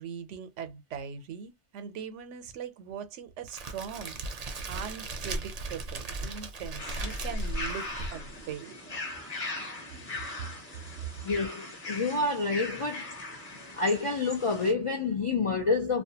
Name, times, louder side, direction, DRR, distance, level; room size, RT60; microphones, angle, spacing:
voice 1, 0.0-4.2 4.7-8.7, right 7 dB, 90° right, 0.9 m, -40 dB
Crackle, 3.5-8.5, right 2 dB, 50° right, 0.5 m, -36 dB
sound 1, 6.8-14.7, left 2 dB, 35° left, 0.9 m, -40 dB
voice 2, 11.2-13.1 13.7-16.0, left 3 dB, 60° left, 0.3 m, -28 dB
2.4 x 2.2 x 2.7 m
omnidirectional pair, 1.2 m